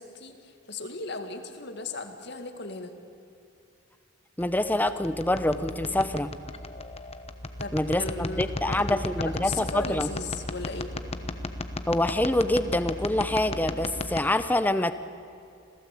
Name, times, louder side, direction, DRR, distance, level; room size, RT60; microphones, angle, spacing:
voice 1, 0.0-2.9 7.6-10.9, left 3 dB, 55° left, 7 dB, 2.0 m, -37 dB
mysterious mic noise, 4.4-14.2, left 2 dB, 30° left, 1.0 m, -35 dB
voice 2, 4.4-6.3 7.7-10.1 11.9-14.9, left 1 dB, 10° left, 11 dB, 0.6 m, -26 dB
26.5 x 17.0 x 8.4 m, 2.6 s
head